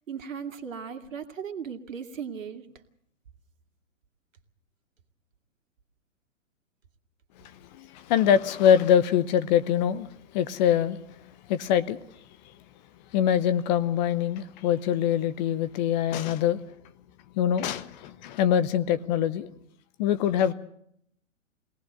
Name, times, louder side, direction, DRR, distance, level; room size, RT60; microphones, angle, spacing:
voice 1, 0.1-2.7, right 7 dB, 75° right, 5 dB, 2.3 m, -37 dB
voice 2, 7.8-10.1 10.3-11.0 11.5-12.0 13.1-16.6 17.4-19.5 20.0-20.5, left 9 dB, 35° left, 14 dB, 0.9 m, -23 dB
23.5 x 18.5 x 6.7 m, 0.70 s
hypercardioid pair, 125°, 39 cm